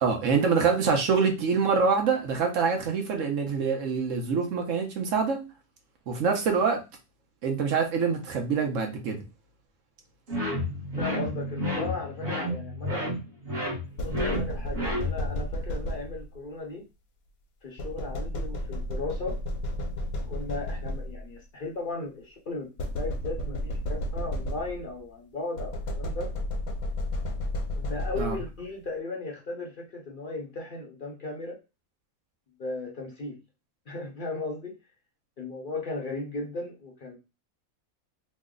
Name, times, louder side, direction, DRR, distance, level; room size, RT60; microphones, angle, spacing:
voice 1, 0.0-5.4 6.1-6.8 7.4-9.2 28.2-28.4, right 5 dB, 65° right, 1.0 m, -25 dB
sound 1, 10.3-15.4, left 1 dB, 45° right, 1.2 m, -31 dB
voice 2, 11.0-13.1 14.0-16.8 17.6-19.4 20.3-26.3 27.7-31.6 32.6-33.4 33.9-34.7 35.4-37.2, left 3 dB, 50° left, 0.6 m, -36 dB
sound 2, 14.0-16.4 17.8-21.4 22.8-25.0 25.6-28.6, left 1 dB, 80° left, 1.2 m, -32 dB
3.1 x 2.1 x 3.6 m
omnidirectional pair, 1.5 m